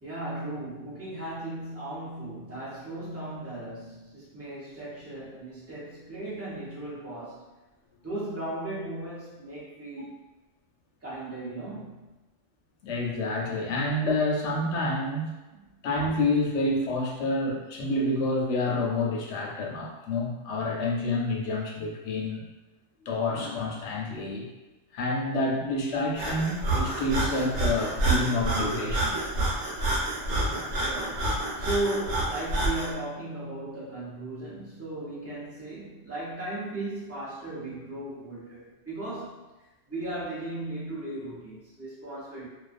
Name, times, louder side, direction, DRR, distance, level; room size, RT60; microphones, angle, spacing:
voice 1, 0.0-7.5 8.0-10.1 11.0-12.1 15.5-15.6 30.8-39.4 39.9-42.5, right 1 dB, 15° right, -9 dB, 0.5 m, -36 dB
voice 2, 12.8-15.3 15.8-22.4 23.1-24.5 24.9-29.2 30.4-30.7, left 2 dB, 70° left, -1 dB, 0.8 m, -28 dB
Breathing, 26.1-32.9, right 1 dB, 85° right, 1.0 m, -28 dB
2.4 x 2.2 x 2.4 m, 1.1 s
omnidirectional pair, 1.3 m